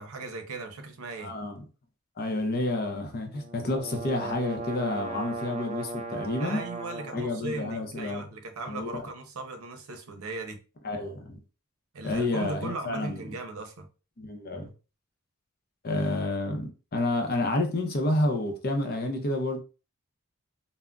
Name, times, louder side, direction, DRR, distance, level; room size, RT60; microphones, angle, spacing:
voice 1, 0.0-1.3 6.4-10.6 11.9-13.9, right 3 dB, 90° right, 0.6 m, -37 dB
voice 2, 1.2-1.6 2.2-6.6 7.1-8.3 8.7-9.0 10.8-11.4 12.0-13.2 14.2-14.7 15.8-19.6, left 2 dB, 45° left, 0.6 m, -29 dB
sound 1, 3.3-7.2, right 3 dB, 30° right, 0.3 m, -37 dB
3.6 x 2.1 x 2.2 m
head